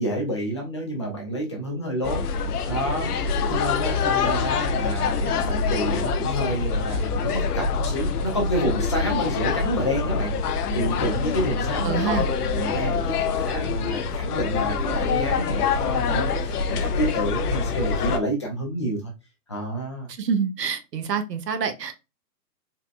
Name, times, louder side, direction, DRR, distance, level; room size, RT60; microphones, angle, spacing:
voice 1, 0.0-2.2 2.7-12.1 12.5-19.1 19.5-20.1, right 1 dB, 20° left, 0.4 m, -29 dB
sound 1, 2.0-18.2, left 5 dB, 70° left, 0.6 m, -25 dB
voice 2, 11.8-12.3 20.2-21.9, right 6 dB, 80° right, 0.8 m, -26 dB
4.1 x 2.2 x 2.3 m
hypercardioid pair, 130°, 48 cm